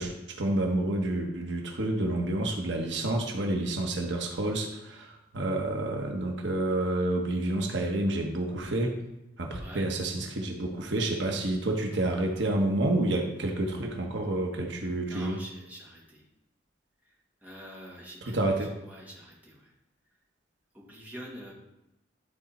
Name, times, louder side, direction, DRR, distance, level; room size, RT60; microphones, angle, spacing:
voice 1, 0.0-9.0 9.4-15.4 18.2-18.7, right 1 dB, 80° right, 2 dB, 1.1 m, -29 dB
voice 2, 9.6-9.9 15.0-16.2 17.4-18.4 18.8-19.7 20.7-21.5, equal, 10° right, -5 dB, 1.9 m, -46 dB
12.0 x 4.2 x 4.2 m, 0.91 s
head